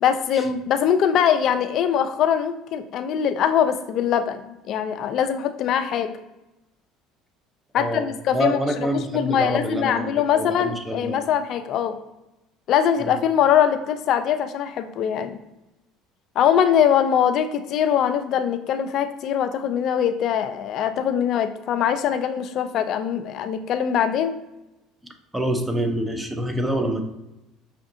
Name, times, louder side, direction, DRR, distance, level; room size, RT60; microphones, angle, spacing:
voice 1, 0.0-4.4 4.7-6.1 7.7-8.6 8.9-12.0 12.7-15.4 16.4-24.4, left 9 dB, 60° left, 9 dB, 0.4 m, -22 dB
voice 2, 7.7-11.3 13.0-13.2 25.3-27.0, right 1 dB, 10° right, 5 dB, 0.6 m, -26 dB
5.6 x 2.5 x 2.7 m, 0.96 s
hypercardioid pair, 80°, 0 cm